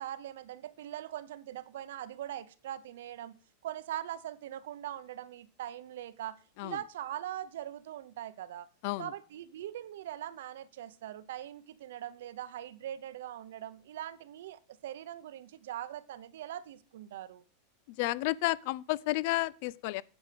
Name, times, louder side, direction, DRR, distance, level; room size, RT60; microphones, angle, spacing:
voice 1, 0.0-3.3 3.6-8.7 9.0-17.4, right 12 dB, 80° right, 0.8 m, -41 dB
voice 2, 17.9-20.0, left 19 dB, 45° left, 0.4 m, -31 dB
9.7 x 8.0 x 5.2 m
supercardioid pair, 175°, 0 cm